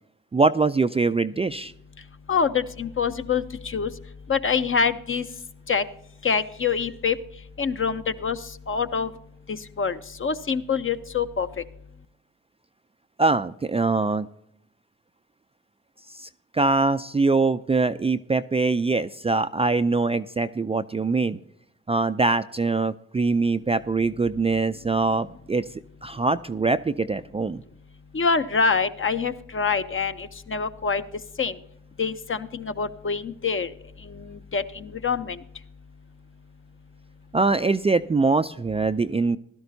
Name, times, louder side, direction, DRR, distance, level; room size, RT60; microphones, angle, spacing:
voice 1, 0.3-1.7 13.2-14.3 16.1-21.4 21.9-25.7 26.0-27.6 37.3-39.4, right 3 dB, 20° right, 10 dB, 0.4 m, -23 dB
voice 2, 2.3-3.9 4.3-5.2 5.7-5.8 6.2-7.2 7.6-8.4 8.7-9.1 9.5-11.5 28.1-31.0 31.4-31.6 32.0-33.7 34.1-35.4, left 5 dB, 40° left, 10 dB, 0.8 m, -25 dB
16.0 x 12.0 x 2.7 m, 0.76 s
supercardioid pair, 45°, 33 cm